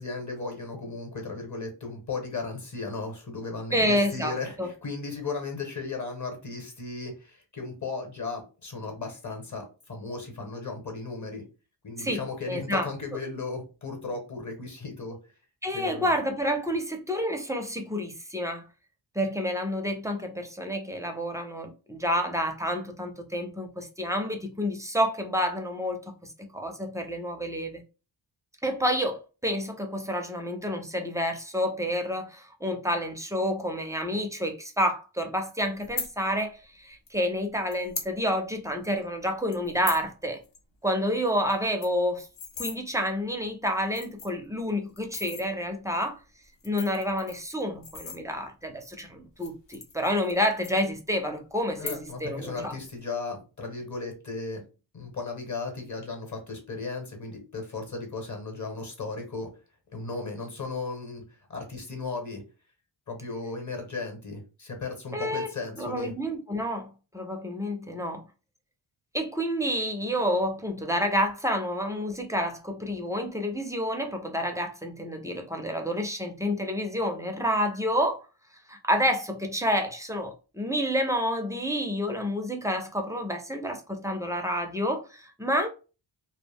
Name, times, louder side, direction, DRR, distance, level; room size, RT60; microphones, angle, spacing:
voice 1, 0.0-11.4 11.8-15.2 15.7-16.2 51.8-54.6 54.9-59.5 59.9-61.2 61.5-62.4 63.1-66.1, left 3 dB, 35° left, 1.0 m, -36 dB
voice 2, 3.7-4.7 12.0-12.9 15.6-18.7 19.1-26.1 26.4-27.8 28.6-40.4 40.8-42.3 42.6-46.2 46.6-52.7 65.1-65.5 65.8-68.2 69.1-78.2 78.7-85.7, equal, 5° right, 0.4 m, -29 dB
sound 1, 35.8-36.1 37.1-37.2 37.7-38.1 38.5-38.6 38.8-39.1 39.5-40.1 40.4-40.6 40.9-41.0 41.3-41.4 41.6-42.8 43.4-43.5 43.9-44.5 45.0-45.4 46.4-48.6 49.3-50.4 50.6-51.3 51.7-52.3 52.6-53.0, left 5 dB, 60° left, 0.8 m, -38 dB
2.1 x 2.1 x 3.4 m
cardioid pair, 85°, 49 cm